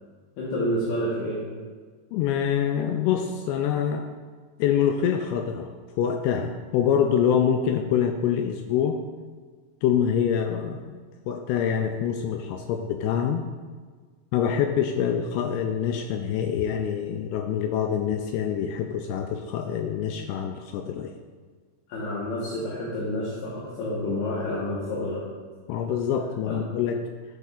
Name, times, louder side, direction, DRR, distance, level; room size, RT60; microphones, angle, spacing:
voice 1, 0.4-1.4 21.9-25.2 26.4-26.6, left 1 dB, 70° left, -7 dB, 3.1 m, -29 dB
voice 2, 2.1-4.1 4.6-5.7 6.0-9.0 9.8-13.5 14.3-21.1 25.7-27.0, left 8 dB, 85° left, 4 dB, 2.4 m, -25 dB
12.0 x 6.1 x 2.4 m, 1.5 s
omnidirectional pair, 5.1 m